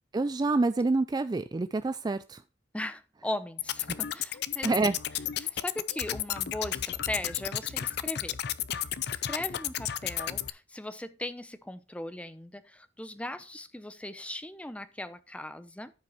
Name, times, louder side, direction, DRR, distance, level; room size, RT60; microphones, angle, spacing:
voice 1, 0.1-2.4 4.6-4.9, right 3 dB, 25° right, 0.3 m, -27 dB
voice 2, 2.7-4.7 5.4-8.4 9.0-15.9, left 1 dB, 5° left, 0.7 m, -38 dB
sound 1, 3.6-10.5, left 11 dB, 65° left, 0.5 m, -33 dB
13.5 x 5.2 x 3.0 m
head